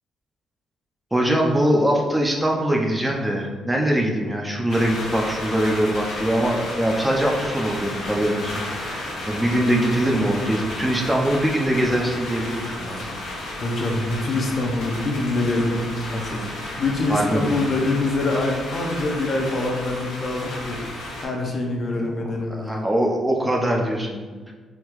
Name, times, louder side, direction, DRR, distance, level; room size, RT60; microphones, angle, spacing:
voice 1, 1.1-13.1 17.1-17.6 22.0-22.1 22.5-24.5, right 1 dB, 10° right, 0 dB, 0.4 m, -22 dB
sound 1, 4.7-21.3, left 1 dB, 85° left, 0.8 m, -33 dB
voice 2, 13.6-16.5 16.8-22.9, left 2 dB, 45° left, 0 dB, 0.6 m, -25 dB
3.5 x 2.3 x 3.0 m, 1.4 s
cardioid pair, 90°, 0 cm